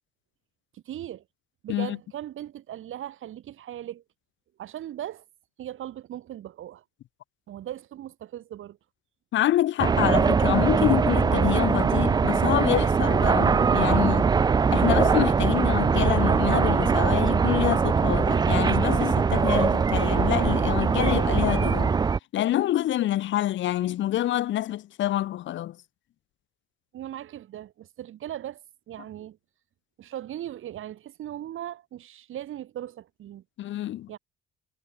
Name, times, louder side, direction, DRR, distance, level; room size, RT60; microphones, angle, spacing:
voice 1, 0.7-1.2 1.6-4.0 4.6-5.2 5.6-6.8 7.5-8.8 26.9-28.6 28.9-29.4 30.0-33.4 34.1-34.2, right 12 dB, 70° right, 4.1 m, -38 dB
voice 2, 9.3-14.3 14.7-21.9 22.3-25.8 33.6-34.1, left 13 dB, 65° left, 0.6 m, -26 dB
sound 1, 9.8-22.2, right 5 dB, 20° right, 0.3 m, -22 dB
cardioid pair, 100°, 21 cm